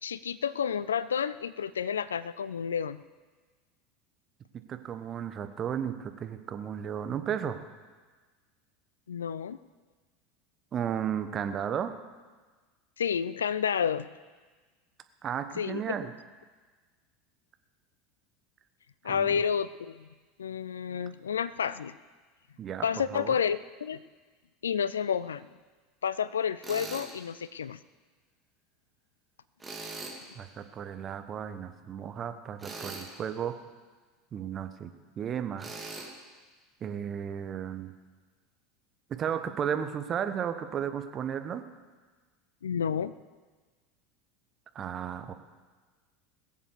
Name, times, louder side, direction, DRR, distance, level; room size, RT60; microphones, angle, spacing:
voice 1, 0.0-3.0 9.1-9.6 13.0-14.1 15.6-16.0 19.0-20.1 20.4-21.9 22.8-24.0 24.6-25.5 26.0-27.8 42.6-43.1, left 7 dB, 75° left, 17 dB, 0.4 m, -30 dB
voice 2, 4.7-7.6 10.7-11.9 15.2-16.1 19.1-19.3 22.6-22.8 23.1-23.3 30.3-33.6 34.3-35.7 36.8-37.9 39.1-41.6 44.7-45.3, right 8 dB, 35° right, 8 dB, 1.2 m, -34 dB
Tools, 26.6-27.1 29.6-30.2 32.6-33.1 35.6-36.1, right 3 dB, 15° right, 2.7 m, -40 dB
21.0 x 7.3 x 6.7 m, 1.4 s
figure-of-eight pair, 75°, 0 cm